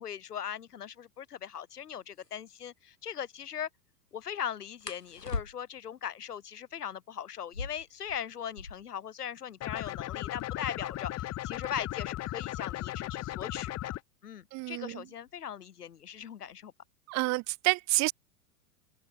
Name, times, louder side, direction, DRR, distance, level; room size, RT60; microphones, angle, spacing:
voice 1, 0.0-3.7 4.1-13.9 14.2-16.7, left 9 dB, 75° left, 3.2 m, -39 dB
sound 1, 1.6-1.7 2.1-2.3 4.8-5.9 7.4-9.0 9.3-9.4 9.6-10.2 10.8-13.4 14.4-14.7 15.1-15.6 15.9-16.6, left 3 dB, 90° left, 5.8 m, -42 dB
sound 2, 9.6-14.0, left 15 dB, 30° left, 3.1 m, -36 dB
voice 2, 14.5-15.0 17.1-18.1, right 24 dB, 35° right, 1.3 m, -29 dB
open air
figure-of-eight pair, 95°, 47 cm